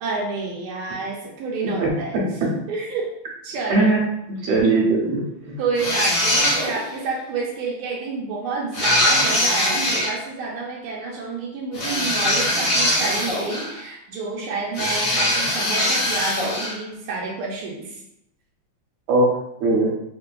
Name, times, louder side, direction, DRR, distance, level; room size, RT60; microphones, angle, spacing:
voice 1, 0.0-2.3 2.7-3.1 3.4-4.0 4.4-4.5 5.6-18.0, right 4 dB, 85° right, -3 dB, 1.5 m, -29 dB
voice 2, 3.7-4.0 4.4-5.6 19.1-19.3 19.6-19.9, right 2 dB, 70° right, -3 dB, 1.5 m, -19 dB
sound 1, 5.8-6.9 8.7-10.1 11.7-13.8 14.7-16.8, left 1 dB, 55° left, 1.0 m, -22 dB
3.5 x 2.5 x 2.2 m, 0.80 s
omnidirectional pair, 2.3 m